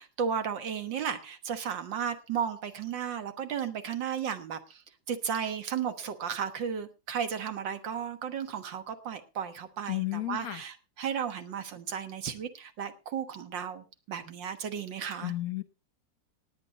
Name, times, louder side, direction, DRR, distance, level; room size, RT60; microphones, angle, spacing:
voice 1, 0.0-4.8 5.1-15.3, right 7 dB, 75° right, 2.0 m, -34 dB
voice 2, 9.9-10.6 15.2-15.6, left 16 dB, 60° left, 1.1 m, -32 dB
19.0 x 8.3 x 3.9 m
omnidirectional pair, 2.1 m